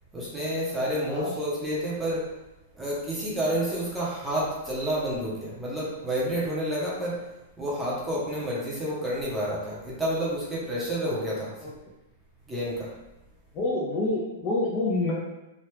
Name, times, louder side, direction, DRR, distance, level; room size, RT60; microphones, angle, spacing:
voice 1, 0.1-2.3 2.7-7.3 7.6-11.7 12.5-13.0, equal, 5° right, -7 dB, 0.8 m, -29 dB
voice 2, 13.5-15.1, left 2 dB, 25° left, -5 dB, 0.5 m, -27 dB
3.2 x 2.4 x 3.1 m, 1.0 s
supercardioid pair, 160°, 0 cm